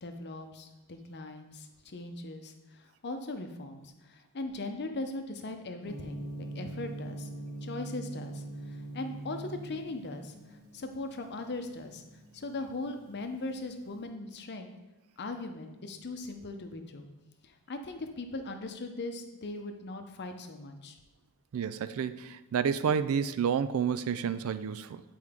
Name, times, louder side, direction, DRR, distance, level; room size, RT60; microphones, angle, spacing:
voice 1, 0.0-2.5 3.0-7.3 7.6-8.4 8.7-10.3 10.7-12.0 12.3-14.7 15.2-17.1 17.7-21.0, left 2 dB, 50° left, 6 dB, 0.7 m, -39 dB
Gong, 5.8-13.9, right 2 dB, 85° right, 1.9 m, -43 dB
voice 2, 21.5-25.0, right 7 dB, 70° right, 14 dB, 0.4 m, -30 dB
8.6 x 4.6 x 3.6 m, 1.0 s
head